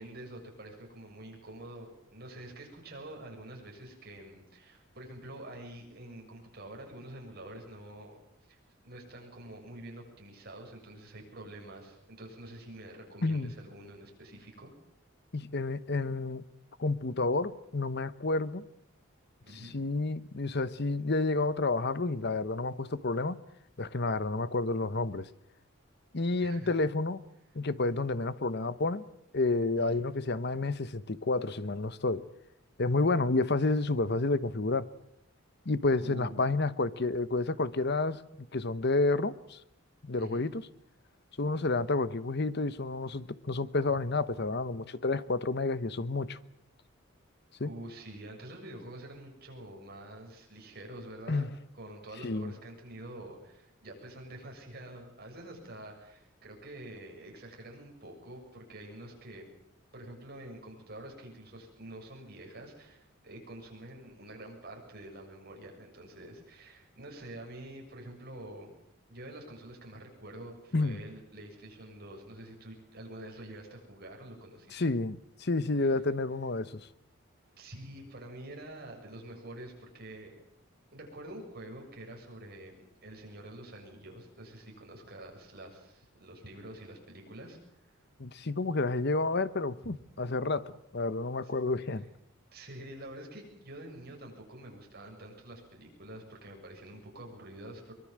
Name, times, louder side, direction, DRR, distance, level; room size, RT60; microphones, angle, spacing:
voice 1, 0.0-8.2 8.5-14.7 19.4-19.8 26.4-26.7 29.8-30.0 36.0-36.4 40.2-40.4 47.6-59.5 59.9-68.7 69.1-74.9 75.8-75.9 77.6-80.4 80.9-87.6 87.9-88.0 89.8-90.0 91.4-91.5 92.5-97.9, right 1 dB, 50° right, 7.2 m, -47 dB
voice 2, 13.2-13.5 15.3-16.4 16.8-18.6 19.7-23.4 23.8-25.3 26.1-27.2 27.5-29.0 29.3-32.3 32.8-34.9 35.6-38.2 38.5-39.6 40.0-40.6 41.4-46.4 47.6-47.7 51.3-51.5 52.2-52.5 70.7-71.0 74.7-76.8 88.2-92.1, left 3 dB, 55° left, 1.0 m, -30 dB
23.5 x 22.0 x 7.6 m
head